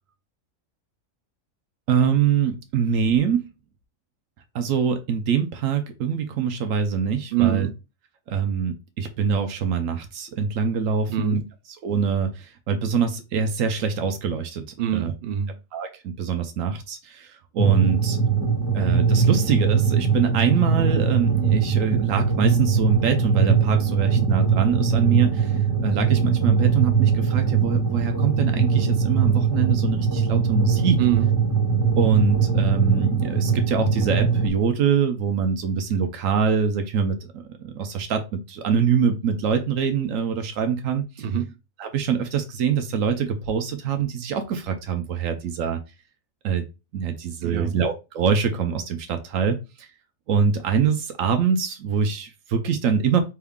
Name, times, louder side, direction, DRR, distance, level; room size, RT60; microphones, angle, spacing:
voice 1, 1.9-3.4 4.5-7.7 8.3-11.4 11.8-14.6 14.9-15.1 15.7-18.2 18.7-31.0 32.0-41.3 41.8-45.8 46.4-46.7 46.9-49.9 50.3-53.2, right 6 dB, 85° right, 1.0 m, -24 dB
voice 2, 7.3-7.7 11.1-11.5 14.8-15.6 31.0-31.3 41.2-41.6 47.4-47.8, right 11 dB, 65° right, 0.5 m, -25 dB
sound 1, 17.6-34.5, right 6 dB, 20° left, 1.5 m, -21 dB
5.5 x 2.3 x 3.5 m
omnidirectional pair, 1.3 m